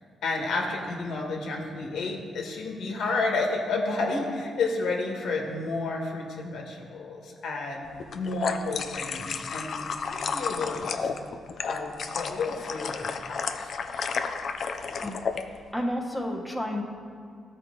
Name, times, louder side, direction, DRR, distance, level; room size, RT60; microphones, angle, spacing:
voice 1, 0.2-7.8 8.1-11.1 11.7-13.7, left 3 dB, 80° left, 0 dB, 1.5 m, -31 dB
sound 1, 8.0-15.4, left 5 dB, 60° left, 0.5 m, -32 dB
voice 2, 15.7-16.8, equal, ahead, -1 dB, 1.2 m, -30 dB
13.0 x 4.6 x 3.9 m, 2.3 s
cardioid pair, 75°, 0 cm